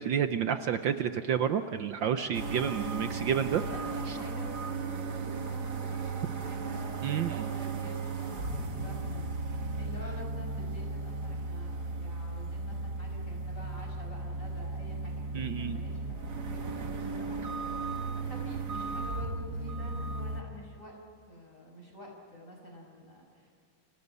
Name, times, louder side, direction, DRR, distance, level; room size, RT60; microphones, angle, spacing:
voice 1, 0.0-3.6 4.1-4.2 7.0-7.5 15.3-15.8, right 8 dB, 65° right, 9 dB, 1.4 m, -30 dB
sound 1, 2.3-20.4, right 3 dB, 50° right, 2.0 m, -35 dB
voice 2, 3.4-20.9 21.3-23.5, left 1 dB, 35° left, 1 dB, 6.5 m, -48 dB
29.5 x 26.5 x 5.5 m, 2.4 s
omnidirectional pair, 2.4 m